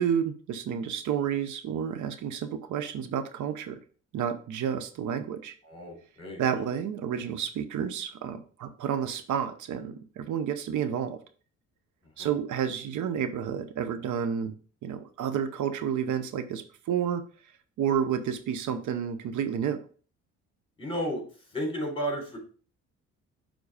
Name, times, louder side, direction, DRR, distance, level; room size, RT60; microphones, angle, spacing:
voice 1, 0.0-3.8 4.1-5.5 6.4-11.2 12.2-14.5 14.8-17.2 17.8-19.8, right 8 dB, 75° right, 9 dB, 0.8 m, -30 dB
voice 2, 5.6-6.6 12.2-12.3 20.8-21.2 21.5-22.4, equal, 20° left, 0 dB, 3.9 m, -33 dB
7.2 x 3.9 x 4.9 m, 0.40 s
cardioid pair, 90°, 30 cm